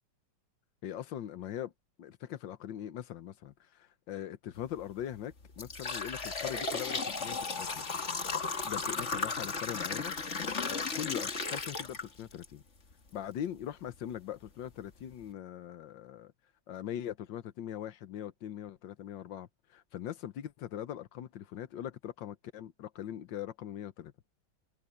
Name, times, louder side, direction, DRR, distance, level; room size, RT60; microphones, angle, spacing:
voice 1, 0.8-1.7 2.0-7.9 8.6-10.1 10.7-12.6 13.1-16.3 16.7-24.1, left 10 dB, 85° left, 1.7 m, -41 dB
sound 1, 4.6-4.8 5.3-12.5 12.9-13.0 13.9-14.0 14.5-14.6 15.0-15.2, left 4 dB, 40° left, 2.0 m, -35 dB
omnidirectional pair, 1.9 m